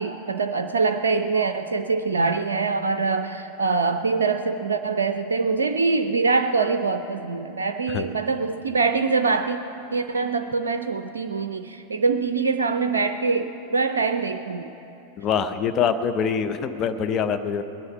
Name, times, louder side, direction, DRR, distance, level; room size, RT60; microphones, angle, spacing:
voice 1, 0.0-9.6 9.9-14.7, right 4 dB, 70° right, 8 dB, 0.4 m, -24 dB
voice 2, 15.2-17.6, left 7 dB, 30° left, 9 dB, 0.6 m, -24 dB
20.5 x 9.7 x 5.6 m, 3.0 s
figure-of-eight pair, 90°, 0 cm